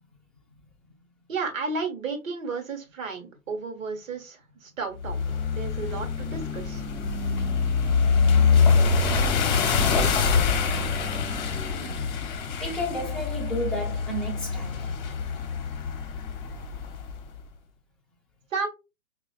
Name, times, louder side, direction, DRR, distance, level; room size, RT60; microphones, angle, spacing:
voice 1, 1.3-5.2 5.5-6.8 18.5-18.7, right 4 dB, 65° right, 1.3 m, -33 dB
sound 1, 5.0-17.2, left 5 dB, 35° left, 0.9 m, -25 dB
voice 2, 12.6-14.9, equal, ahead, 0.6 m, -32 dB
4.9 x 2.4 x 2.4 m
hypercardioid pair, 125°, 43 cm